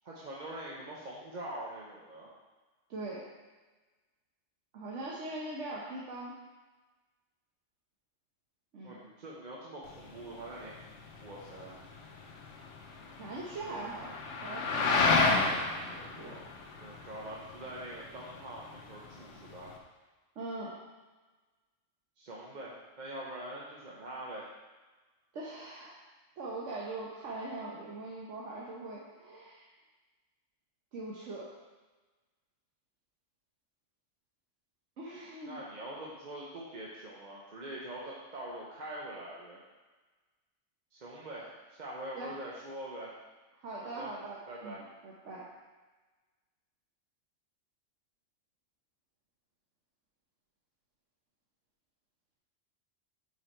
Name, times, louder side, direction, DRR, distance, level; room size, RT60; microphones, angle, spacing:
voice 1, 0.0-2.3 8.8-10.7 11.2-11.8 13.5-14.1 16.8-19.7 22.2-24.5 35.5-39.6 40.9-43.1 43.7-44.1 44.5-44.8, right 1 dB, 40° right, -5 dB, 0.9 m, -44 dB
voice 2, 2.9-3.2 4.7-6.3 8.7-9.0 13.2-14.1 14.4-16.4 20.4-20.7 25.3-26.0 26.4-29.7 30.9-31.5 35.0-35.6 42.1-42.3 43.6-45.5, right 2 dB, 70° right, -5 dB, 1.3 m, -41 dB
One car passing by, 9.9-19.8, left 3 dB, 75° left, 1.1 m, -33 dB
6.7 x 4.8 x 4.4 m, 1.3 s
omnidirectional pair, 1.3 m